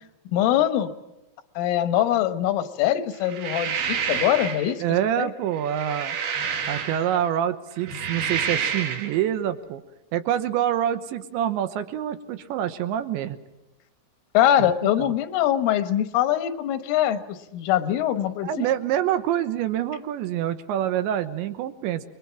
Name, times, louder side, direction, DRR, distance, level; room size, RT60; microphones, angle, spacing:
voice 1, 0.3-0.9 1.6-4.8 5.2-5.3 14.4-18.7, left 11 dB, 85° left, 10 dB, 3.9 m, -23 dB
sound 1, 3.2-4.7 5.5-7.3 7.8-9.1, right 7 dB, 60° right, 4.2 m, -29 dB
voice 2, 4.8-6.2 6.7-9.8 10.1-13.4 14.6-15.1 18.4-22.0, right 10 dB, 75° right, 10 dB, 3.2 m, -26 dB
29.5 x 22.5 x 6.0 m, 0.97 s
omnidirectional pair, 5.6 m